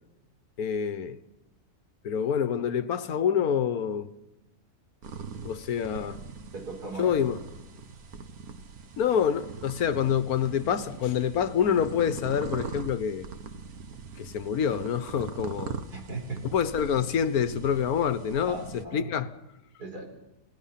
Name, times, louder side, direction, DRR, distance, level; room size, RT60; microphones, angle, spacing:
voice 1, 0.6-1.2 2.0-4.1 5.4-6.2 7.0-7.4 9.0-13.3 14.2-15.8 16.5-19.3, left 8 dB, 70° left, 1.4 m, -27 dB
sound 1, 5.0-18.9, right 5 dB, 70° right, 1.7 m, -41 dB
voice 2, 6.5-7.1 15.9-16.5 18.5-19.1 19.8-20.1, right 3 dB, 90° right, 5.0 m, -37 dB
28.0 x 17.5 x 5.8 m
omnidirectional pair, 1.6 m